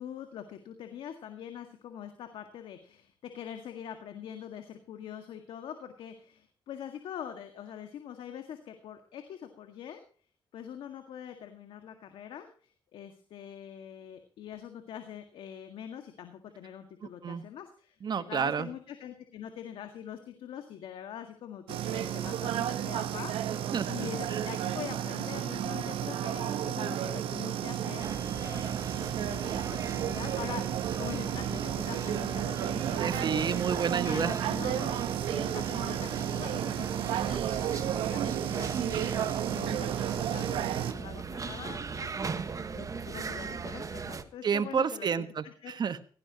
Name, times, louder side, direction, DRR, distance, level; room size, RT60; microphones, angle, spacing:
voice 1, 0.0-10.0 10.5-33.5 34.0-42.4 42.7-45.8, left 9 dB, 80° left, 6 dB, 1.9 m, -44 dB
voice 2, 18.0-18.7 23.7-24.1 33.0-34.3 44.4-46.1, right 6 dB, 55° right, 12 dB, 1.4 m, -30 dB
sound 1, 21.7-40.9, right 10 dB, 90° right, 1.3 m, -32 dB
sound 2, 28.0-44.2, right 5 dB, 40° right, 1.5 m, -38 dB
17.0 x 16.5 x 3.0 m, 0.42 s
cardioid pair, 75°, 9 cm